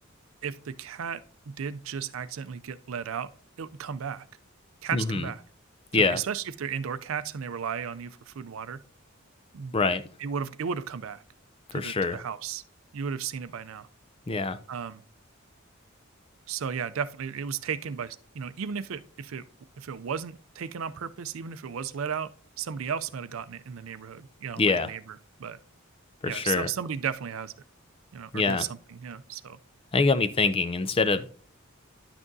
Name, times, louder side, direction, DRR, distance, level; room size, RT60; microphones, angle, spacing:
voice 1, 0.4-3.3 3.6-4.3 4.8-5.4 5.9-8.8 9.5-9.7 10.2-11.2 11.7-12.6 12.9-13.9 14.7-15.0 16.5-19.4 19.8-22.3 22.6-25.6 26.2-27.5 28.1-29.6, right 7 dB, 70° right, 0.4 m, -34 dB
voice 2, 4.9-5.3 5.9-6.2 9.7-10.0 11.7-12.2 14.3-14.6 24.6-24.9 26.2-26.7 28.3-28.6 29.9-31.3, left 4 dB, 25° left, 0.4 m, -25 dB
10.5 x 6.0 x 2.6 m
head